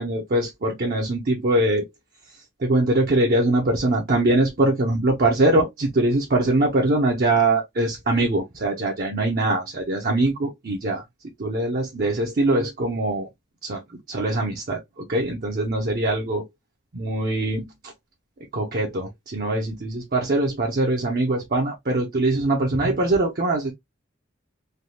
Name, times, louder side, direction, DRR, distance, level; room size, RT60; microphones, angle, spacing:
voice 1, 0.0-1.8 2.6-11.0 11.4-13.3 13.6-13.8 14.1-16.4 16.9-17.7 18.5-23.7, right 2 dB, 50° right, 0.6 m, -22 dB
3.3 x 2.2 x 2.7 m
head